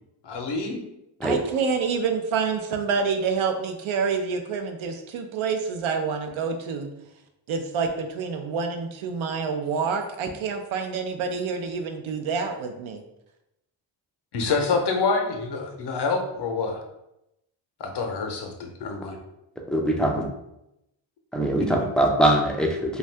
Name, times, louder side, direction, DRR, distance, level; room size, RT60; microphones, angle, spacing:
voice 1, 0.2-0.8 14.3-16.8 17.8-19.2, left 4 dB, 60° left, 3 dB, 0.6 m, -27 dB
voice 2, 1.2-6.9 7.5-13.0, right 5 dB, 80° right, 5 dB, 0.6 m, -27 dB
voice 3, 19.7-20.2 21.3-23.0, right 1 dB, ahead, 1 dB, 0.3 m, -22 dB
2.6 x 2.3 x 3.2 m, 0.86 s
cardioid pair, 95°, 47 cm